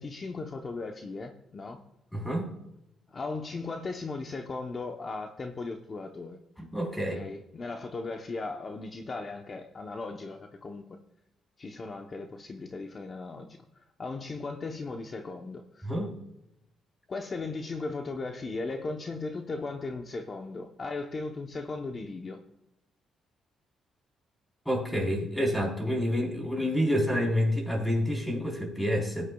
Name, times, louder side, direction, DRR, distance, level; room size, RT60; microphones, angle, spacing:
voice 1, 0.0-1.8 3.1-6.4 7.1-10.9 11.6-15.9 17.1-22.4, left 3 dB, 40° left, 4 dB, 0.9 m, -37 dB
voice 2, 2.1-2.5 6.7-7.2 15.8-16.1 24.7-29.3, equal, 5° left, 0 dB, 4.1 m, -28 dB
16.5 x 9.8 x 2.3 m, 0.83 s
cardioid pair, 90°, 0 cm